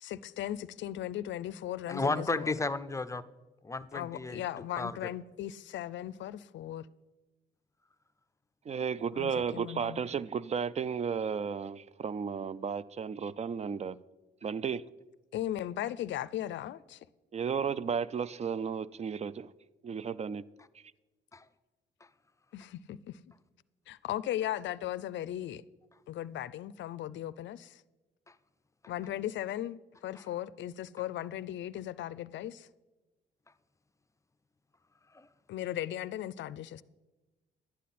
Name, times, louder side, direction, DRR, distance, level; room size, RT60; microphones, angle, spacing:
voice 1, 0.0-2.6 3.9-6.9 9.1-10.1 15.3-17.0 22.5-23.2 23.9-25.6 26.1-27.8 28.9-32.7 35.5-36.8, left 12 dB, 65° left, 0.5 m, -37 dB
voice 2, 1.9-3.2 3.6-4.4 4.8-4.9 35.2-35.3, left 3 dB, 15° left, 0.5 m, -32 dB
voice 3, 8.7-14.0 14.4-14.8 17.3-19.5 19.8-20.4, right 6 dB, 35° right, 0.4 m, -33 dB
11.5 x 10.0 x 4.2 m
cardioid pair, 90°, 20 cm